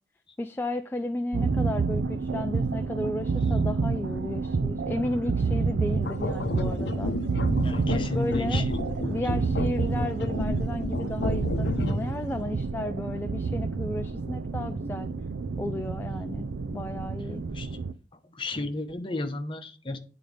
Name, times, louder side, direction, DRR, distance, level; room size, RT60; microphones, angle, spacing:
voice 1, 0.4-7.1 7.9-8.6 9.1-15.1 15.6-16.5 16.7-17.4, left 1 dB, 10° left, 0.3 m, -33 dB
sound 1, 1.3-17.9, right 4 dB, 90° right, 0.5 m, -29 dB
sound 2, 6.0-12.2, left 3 dB, 65° left, 0.6 m, -31 dB
voice 2, 7.6-8.9 17.5-17.8 18.3-20.0, left 2 dB, 30° left, 0.9 m, -33 dB
10.0 x 3.9 x 4.9 m
head